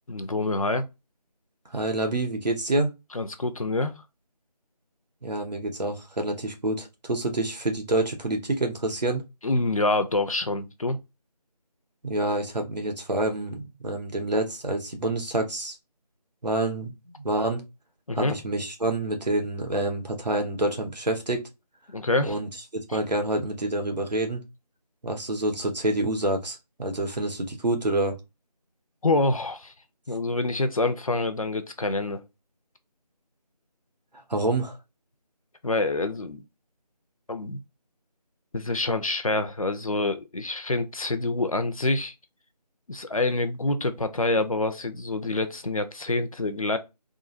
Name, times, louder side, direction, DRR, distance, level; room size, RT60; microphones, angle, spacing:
voice 1, 0.1-0.9 3.1-3.9 9.4-11.0 18.1-18.4 21.9-22.4 22.9-23.0 29.0-29.7 30.1-32.2 35.6-36.4 37.3-37.6 38.5-42.1 42.9-46.8, left 2 dB, 55° left, 0.6 m, -26 dB
voice 2, 1.7-2.9 5.2-9.2 12.0-15.8 16.4-16.9 17.2-17.6 18.1-21.5 22.2-22.5 22.7-24.4 25.0-28.2 34.3-34.8, right 2 dB, 85° right, 1.2 m, -27 dB
3.7 x 2.1 x 2.5 m
figure-of-eight pair, 170°, 21 cm